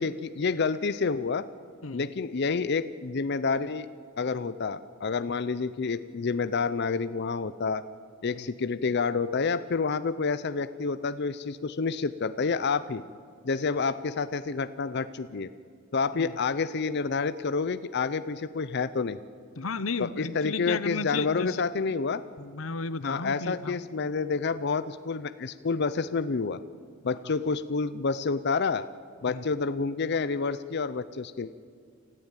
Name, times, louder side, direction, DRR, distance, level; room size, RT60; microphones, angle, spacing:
voice 1, 0.0-1.5 1.9-3.9 4.2-7.8 8.2-13.0 13.4-15.5 15.9-19.2 20.0-22.2 23.0-26.6 27.0-28.9 29.2-31.5, left 4 dB, 55° left, 0.6 m, -29 dB
voice 2, 19.6-21.6 22.4-23.8 29.3-29.4, left 4 dB, 85° left, 0.9 m, -33 dB
28.5 x 14.0 x 9.0 m
head